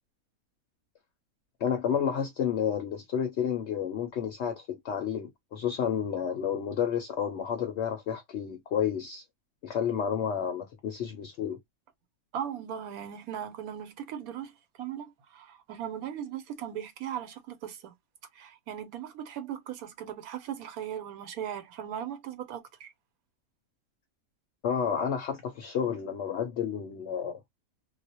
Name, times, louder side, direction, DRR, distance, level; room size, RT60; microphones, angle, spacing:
voice 1, 1.6-9.2 9.6-11.6 24.6-27.4, left 8 dB, 65° left, 0.7 m, -30 dB
voice 2, 12.3-14.5 14.8-17.9 18.4-22.9, right 9 dB, 90° right, 1.1 m, -38 dB
2.3 x 2.1 x 2.6 m
omnidirectional pair, 1.5 m